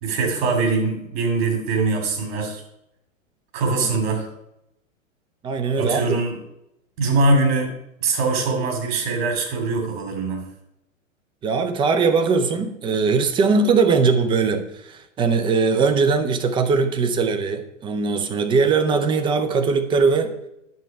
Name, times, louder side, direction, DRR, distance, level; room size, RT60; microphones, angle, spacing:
voice 1, 0.0-2.6 3.5-4.3 5.8-6.4 7.0-7.7 8.0-10.5, right 3 dB, 50° right, 3 dB, 2.8 m, -22 dB
voice 2, 5.4-6.2 11.4-20.3, right 4 dB, 10° right, 7 dB, 0.5 m, -20 dB
9.4 x 6.7 x 4.8 m, 0.82 s
figure-of-eight pair, 105°, 40 cm